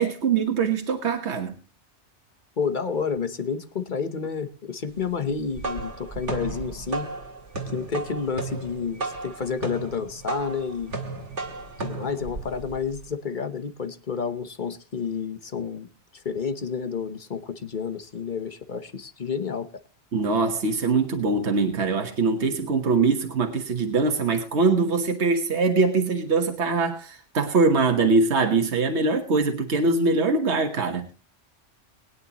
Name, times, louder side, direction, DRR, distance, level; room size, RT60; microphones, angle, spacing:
voice 1, 0.0-1.5 20.1-31.1, right 4 dB, 70° right, 1.7 m, -23 dB
voice 2, 2.6-7.1 7.7-10.9 11.8-15.9 16.1-19.7, left 6 dB, 45° left, 1.2 m, -30 dB
sound 1, 5.3-13.1, right 3 dB, 85° right, 2.3 m, -34 dB
21.5 x 9.7 x 3.0 m
omnidirectional pair, 1.2 m